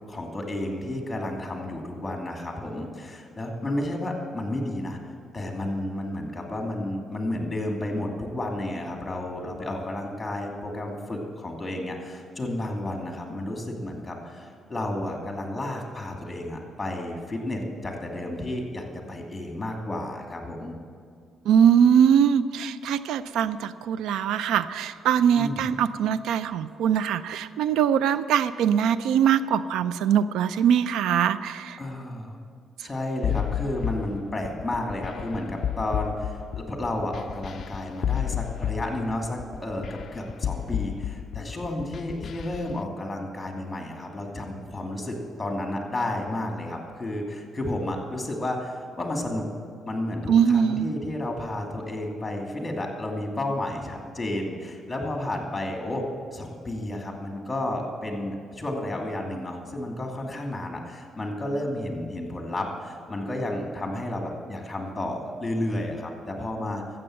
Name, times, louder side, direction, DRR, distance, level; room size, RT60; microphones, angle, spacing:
voice 1, 0.1-5.0 5.3-20.7 25.4-25.7 31.8-32.4 32.8-49.4 49.9-56.0 56.3-66.8, left 1 dB, 20° left, 2 dB, 2.4 m, -32 dB
voice 2, 21.5-31.8 50.3-50.9, right 8 dB, 85° right, 15 dB, 0.4 m, -22 dB
sound 1, 33.2-42.8, left 10 dB, 60° left, 0.3 m, -31 dB
13.0 x 7.9 x 7.5 m, 2.2 s
cardioid pair, 90°, 0 cm